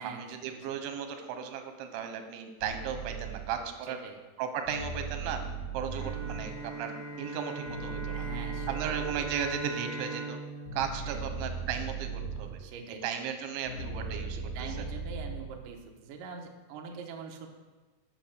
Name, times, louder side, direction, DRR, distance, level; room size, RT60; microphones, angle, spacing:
voice 1, 0.0-4.0 4.4-5.4 5.7-8.3 8.7-10.4 10.7-12.6 13.0-14.7, right 7 dB, 85° right, 6 dB, 3.3 m, -36 dB
sound 1, 2.6-3.6 4.7-9.9 10.7-12.7 13.7-15.7, right 4 dB, 60° left, 2.9 m, -38 dB
Bowed string instrument, 5.9-12.1, right 3 dB, 15° right, 2.2 m, -40 dB
voice 2, 8.1-8.9 11.0-11.3 12.6-13.0 14.3-17.5, right 5 dB, 70° right, 1 dB, 2.1 m, -43 dB
11.0 x 6.3 x 6.6 m, 1.3 s
omnidirectional pair, 5.3 m